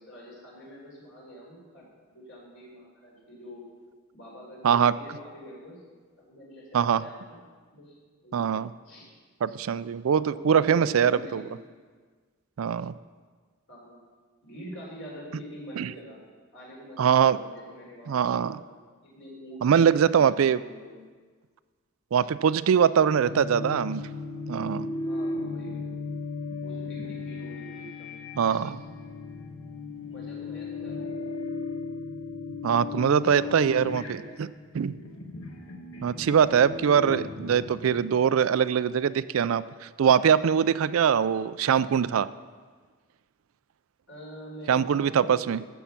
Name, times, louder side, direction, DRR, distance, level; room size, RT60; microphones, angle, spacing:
voice 1, 0.0-3.7 4.1-5.8 6.2-7.4 7.7-8.5 8.8-9.1 10.3-11.6 13.7-14.0 14.4-16.2 16.5-18.6 19.0-21.0 23.3-23.4 25.0-25.9 26.6-28.2 28.4-28.6 30.0-31.2 33.0-34.4 44.1-45.7, equal, 60° left, -3 dB, 4.1 m, -45 dB
voice 2, 8.3-8.7 9.4-11.4 12.6-12.9 15.8-15.9 17.0-17.4 18.1-18.6 19.6-20.6 22.1-24.0 24.5-24.9 28.4-28.8 32.6-34.2 34.7-35.0 36.0-42.3 44.7-45.6, right 7 dB, 75° right, 16 dB, 0.4 m, -22 dB
sound 1, 23.1-38.3, left 3 dB, 75° left, 1.4 m, -36 dB
14.0 x 7.3 x 5.8 m, 1.5 s
head